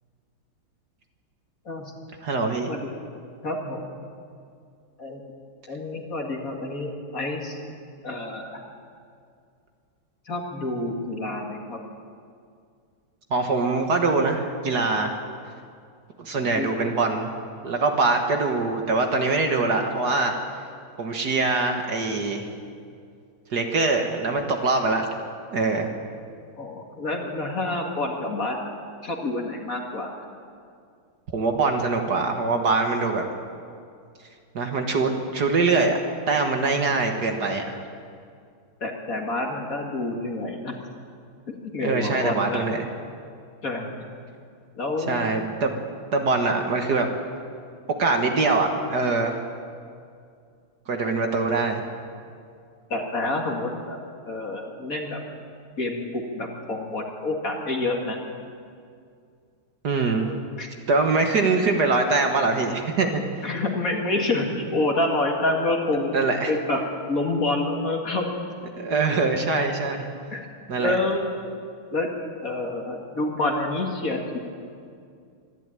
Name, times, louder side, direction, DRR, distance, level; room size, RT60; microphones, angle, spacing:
voice 1, 2.2-2.7 13.3-15.2 16.2-17.3 17.6-20.4 21.0-22.5 23.5-25.1 25.5-25.9 31.3-33.3 34.5-36.0 36.3-37.8 41.8-42.9 45.1-45.8 46.1-47.1 47.9-49.4 50.9-51.8 59.8-60.3 60.9-63.5 66.1-66.5 68.8-70.1 70.7-71.0, right 3 dB, 55° right, 4 dB, 1.9 m, -23 dB
voice 2, 3.4-4.0 5.0-5.2 5.7-7.6 8.0-8.6 10.3-11.8 16.3-16.9 26.6-28.6 29.0-30.1 38.8-40.8 41.5-42.6 43.6-43.9 44.8-45.3 52.9-54.0 54.3-55.2 55.8-58.2 60.3-60.7 63.4-66.1 66.5-66.8 67.1-68.3 70.3-70.4 70.8-71.3 71.9-72.1 72.4-74.4, left 2 dB, 40° left, 1 dB, 2.4 m, -28 dB
25.0 x 11.5 x 9.0 m, 2.3 s
omnidirectional pair, 2.3 m